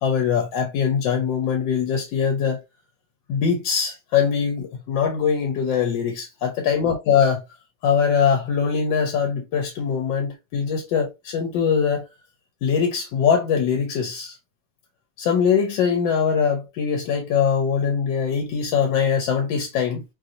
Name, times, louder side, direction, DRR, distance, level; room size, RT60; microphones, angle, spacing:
voice 1, 0.0-2.6 3.3-7.4 7.8-12.1 12.6-14.4 15.2-20.0, left 7 dB, 80° left, 1.3 m, -22 dB
3.2 x 2.6 x 2.4 m
omnidirectional pair, 2.0 m